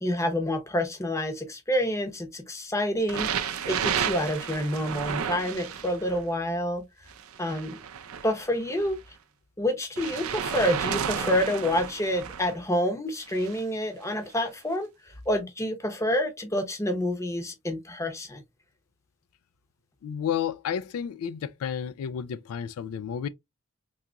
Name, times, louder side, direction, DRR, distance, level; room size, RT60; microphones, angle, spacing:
voice 1, 0.0-6.8 7.4-7.8 8.2-9.0 9.6-14.9 15.3-18.4, equal, 15° left, 0.7 m, -28 dB
sound 1, 3.1-6.2 7.1-8.9 10.0-12.5 13.3-13.6 14.4-14.5, right 8 dB, 70° right, 0.5 m, -32 dB
voice 2, 20.0-23.3, left 8 dB, 80° left, 0.3 m, -31 dB
3.7 x 2.8 x 2.3 m
head